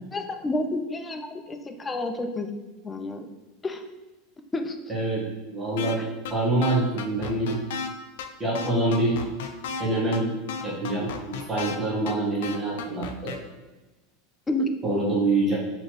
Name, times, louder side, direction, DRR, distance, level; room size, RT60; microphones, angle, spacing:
voice 1, 0.1-2.5 2.8-3.3 3.6-3.8 4.5-4.8 6.0-6.1 14.5-14.7, left 2 dB, 15° left, 6 dB, 0.4 m, -29 dB
voice 2, 4.9-5.2 5.5-6.0 6.3-7.6 8.4-9.2 9.8-10.3 10.6-13.3 14.8-15.6, right 2 dB, 15° right, -8 dB, 1.5 m, -25 dB
sound 1, 5.8-6.0 6.2-6.3 6.6-7.9 8.2-8.3 8.5-9.8 10.1-10.2 10.5-11.8 12.1-12.2 12.4-13.4, left 6 dB, 80° left, 0.4 m, -33 dB
4.1 x 2.9 x 3.1 m, 1.1 s
supercardioid pair, 130°, 0 cm